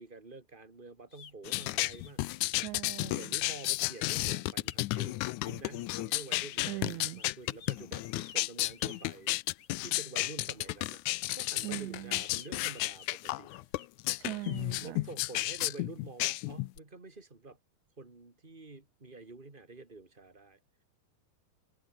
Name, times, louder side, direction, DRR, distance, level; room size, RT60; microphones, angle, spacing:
voice 1, 0.0-2.6 3.1-9.3 9.8-11.0 11.3-13.5 14.8-17.6 18.0-20.6, right 3 dB, 15° right, 3.3 m, -48 dB
sound 1, 1.1-10.4 11.2-14.7, left 7 dB, 40° left, 1.9 m, -55 dB
sound 2, 1.4-16.8, left 19 dB, 80° left, 2.0 m, -33 dB
voice 2, 2.5-3.3 6.7-7.2 11.6-12.2 14.2-15.0, right 20 dB, 80° right, 1.8 m, -40 dB
omnidirectional pair, 3.6 m